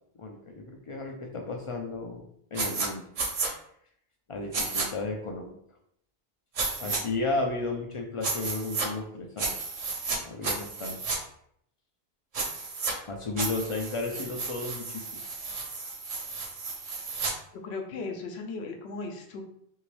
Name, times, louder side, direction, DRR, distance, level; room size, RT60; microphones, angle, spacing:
voice 1, 0.2-2.2 2.5-3.0 4.3-5.6 6.8-9.6 10.2-11.0 13.1-15.2, left 3 dB, 60° left, 1 dB, 0.3 m, -33 dB
sound 1, 2.6-2.9 3.2-3.5 4.5-4.9 6.6-7.0 8.2-8.9 9.4-10.2 10.4-11.2 12.3-12.9 13.4-17.3, right 4 dB, 45° right, 0.5 m, -32 dB
voice 2, 17.6-19.4, left 3 dB, 85° left, 3 dB, 0.9 m, -37 dB
2.9 x 2.7 x 3.1 m, 0.69 s
omnidirectional pair, 1.1 m